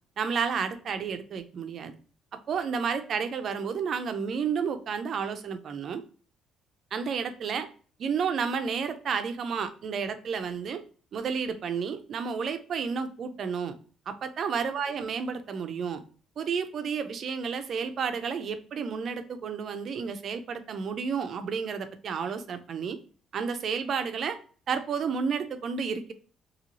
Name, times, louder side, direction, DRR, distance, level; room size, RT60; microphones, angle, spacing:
voice 1, 0.2-1.9 2.5-6.0 6.9-7.7 8.0-10.8 11.1-13.7 14.1-16.0 16.4-23.0 23.3-24.4 24.7-26.1, right 6 dB, 45° right, 9 dB, 0.4 m, -31 dB
2.9 x 2.7 x 2.6 m, 0.41 s
cardioid pair, 135°, 0 cm